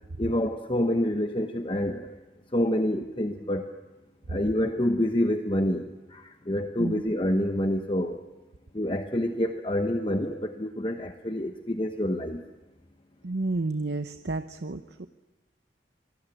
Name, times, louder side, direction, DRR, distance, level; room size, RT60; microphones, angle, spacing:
voice 1, 0.2-2.2 2.5-3.7 4.3-8.2 8.7-12.4, left 1 dB, 30° left, 6 dB, 1.0 m, -27 dB
voice 2, 13.2-15.1, right 2 dB, 70° right, 9 dB, 0.8 m, -31 dB
26.0 x 20.5 x 9.1 m, 1.1 s
head